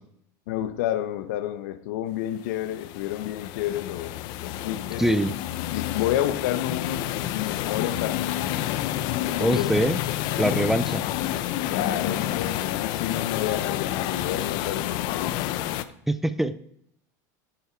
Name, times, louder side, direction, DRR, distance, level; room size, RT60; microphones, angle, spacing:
voice 1, 0.5-4.2 4.4-5.0 5.7-9.8 10.3-10.6 11.7-15.5, left 12 dB, 75° left, 11 dB, 1.1 m, -30 dB
sound 1, 2.5-15.8, left 13 dB, 50° left, 0.8 m, -29 dB
voice 2, 5.0-5.3 9.4-10.0 10.4-11.0 16.1-16.6, right 1 dB, 5° right, 14 dB, 0.5 m, -23 dB
10.0 x 8.8 x 4.7 m, 0.70 s
supercardioid pair, 145°, 9 cm